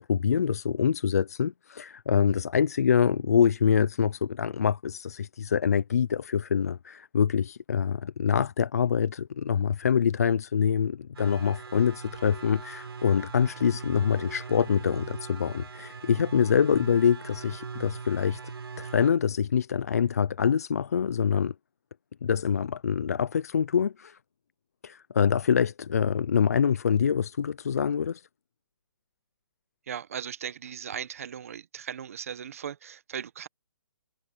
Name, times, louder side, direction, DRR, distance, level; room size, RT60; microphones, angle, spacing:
voice 1, 0.0-18.4 18.8-21.5 22.2-24.2 24.8-28.3, left 7 dB, 40° left, 0.4 m, -25 dB
sound 1, 11.1-19.1, right 5 dB, 80° right, 4.3 m, -41 dB
voice 2, 29.9-33.5, right 8 dB, 35° right, 0.9 m, -38 dB
hypercardioid pair, 175°, 13 cm